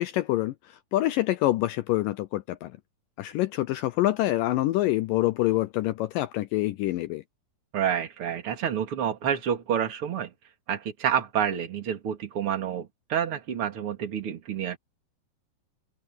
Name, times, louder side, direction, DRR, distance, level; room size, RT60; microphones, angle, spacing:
voice 1, 0.0-2.7 3.2-7.2, left 16 dB, 80° left, 2.0 m, -26 dB
voice 2, 7.7-10.3 10.7-14.8, right 9 dB, 40° right, 2.7 m, -28 dB
omnidirectional pair, 4.5 m